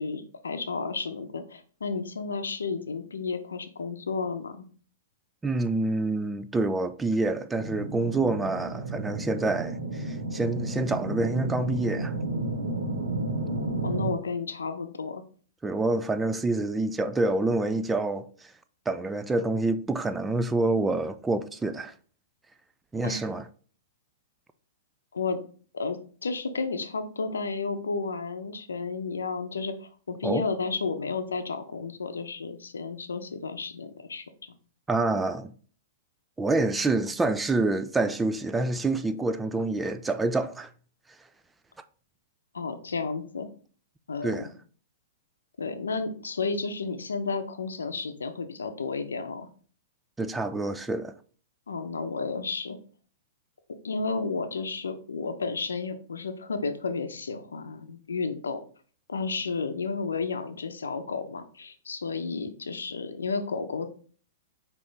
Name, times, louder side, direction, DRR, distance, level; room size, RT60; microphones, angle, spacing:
voice 1, 0.0-4.6 13.8-15.2 23.0-23.2 25.1-25.4 25.7-34.5 42.5-43.5 44.1-44.5 45.6-49.5 51.7-52.8 53.8-58.6 59.1-63.9, left 4 dB, 90° left, 0.6 m, -32 dB
voice 2, 5.4-12.1 15.6-18.5 18.9-21.9 22.9-23.4 30.2-30.4 34.9-35.5 36.4-40.7 44.2-44.5 50.2-51.1, right 2 dB, 10° right, 0.3 m, -27 dB
sound 1, 7.6-14.1, right 2 dB, 90° right, 1.3 m, -32 dB
5.3 x 2.9 x 3.3 m
hypercardioid pair, 120°, 0 cm